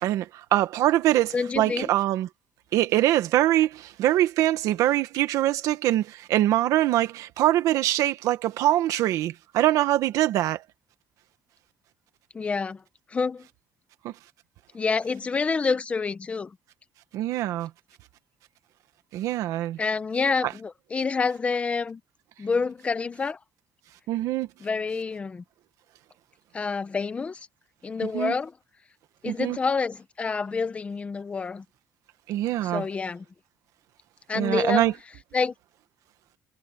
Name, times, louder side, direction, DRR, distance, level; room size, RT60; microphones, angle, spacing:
voice 1, 0.0-2.3 2.7-10.6 14.0-14.1 17.1-17.7 19.1-19.8 24.1-24.5 28.1-28.3 29.2-29.6 32.3-32.8 34.3-34.9, right 14 dB, 75° right, 1.6 m, -23 dB
voice 2, 1.3-1.9 12.3-12.8 13.1-13.5 14.7-16.6 19.8-22.0 22.4-23.4 24.6-25.4 26.5-27.5 27.8-28.5 29.2-31.6 32.6-33.2 34.3-34.9 35.3-35.5, left 4 dB, 20° left, 1.1 m, -27 dB
cardioid pair, 150°, 6 cm